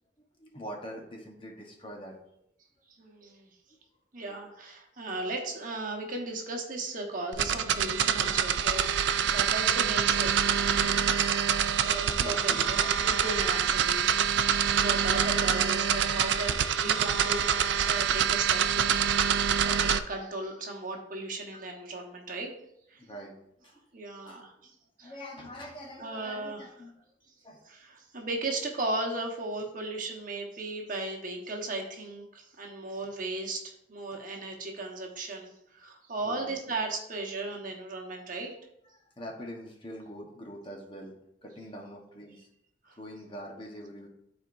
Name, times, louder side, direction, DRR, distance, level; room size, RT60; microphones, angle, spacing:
voice 1, 0.4-2.2 3.2-3.3 4.3-4.4 11.6-13.2 14.7-14.8 21.5-21.6 22.9-23.9 24.3-24.5 25.0-26.9 27.4-27.6 36.2-36.7 38.2-38.3 38.9-42.5 43.0-44.1, equal, 30° left, 1 dB, 1.1 m, -44 dB
voice 2, 2.9-3.5 4.1-11.1 11.8-14.1 14.8-17.4 17.8-22.5 22.9-23.0 23.9-24.7 25.0-25.1 26.0-26.7 27.6-38.5 42.8-43.0, right 2 dB, 50° right, 1 dB, 1.2 m, -36 dB
sound 1, 7.3-20.0, right 8 dB, 80° right, 0.4 m, -26 dB
12.5 x 4.4 x 2.6 m, 0.78 s
head